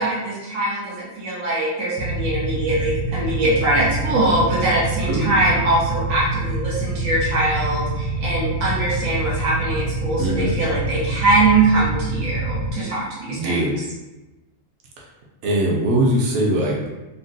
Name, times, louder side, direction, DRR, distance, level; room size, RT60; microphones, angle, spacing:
voice 1, 0.0-13.6, right 2 dB, 85° right, -7 dB, 1.3 m, -22 dB
Motorcycle / Idling, 2.0-12.7, right 2 dB, 40° right, 0.7 m, -26 dB
voice 2, 10.2-10.5 13.3-13.8 15.4-16.8, right 1 dB, 65° right, -3 dB, 1.0 m, -21 dB
3.6 x 2.1 x 2.6 m, 1.1 s
omnidirectional pair, 1.4 m